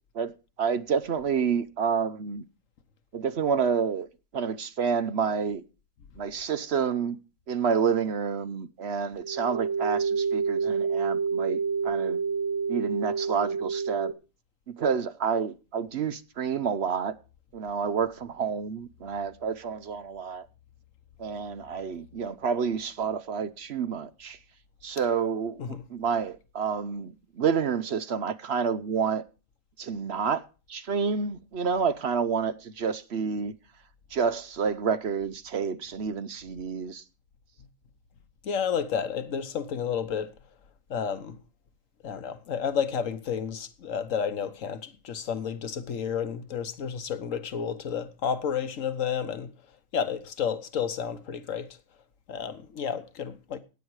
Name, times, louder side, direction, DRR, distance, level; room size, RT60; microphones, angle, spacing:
voice 1, 0.6-2.4 3.1-4.1 4.3-5.6 6.2-7.2 7.5-12.2 12.7-14.1 14.8-17.1 17.5-20.5 21.2-24.4 24.8-29.2 29.8-30.4 30.7-33.5 34.1-37.0, right 6 dB, 55° right, 0.9 m, -29 dB
sound 1, 9.2-14.1, right 5 dB, 25° right, 0.8 m, -28 dB
voice 2, 38.4-40.3 40.9-41.4 42.0-49.5 49.9-51.7 52.3-53.6, left 7 dB, 70° left, 1.4 m, -31 dB
15.0 x 9.0 x 4.7 m
omnidirectional pair, 1.4 m